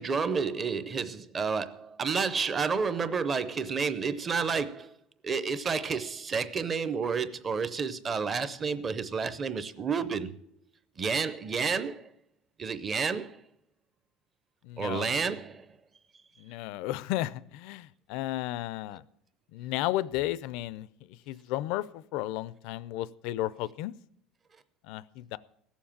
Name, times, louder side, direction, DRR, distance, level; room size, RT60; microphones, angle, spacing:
voice 1, 0.0-4.9 5.2-10.4 11.0-12.1 12.6-13.4 14.8-15.7, right 5 dB, 20° right, 0.6 m, -30 dB
voice 2, 14.6-15.2 16.4-19.0 19.5-23.9 24.8-25.4, left 15 dB, 60° left, 0.4 m, -34 dB
16.0 x 7.2 x 7.2 m
cardioid pair, 165°, 0 cm